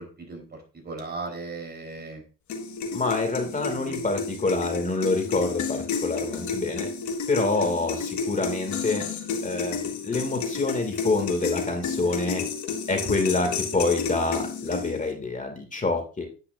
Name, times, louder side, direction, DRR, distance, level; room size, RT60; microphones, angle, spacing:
voice 1, 0.8-2.2 3.6-4.0, right 3 dB, 35° right, 2 dB, 3.9 m, -36 dB
sound 1, 2.5-15.1, left 5 dB, 70° left, 1.5 m, -31 dB
voice 2, 2.9-6.9 7.3-9.0 9.4-12.4 12.9-16.3, left 3 dB, 25° left, 4 dB, 2.4 m, -27 dB
9.8 x 9.3 x 2.6 m, 0.35 s
cardioid pair, 90°, 30 cm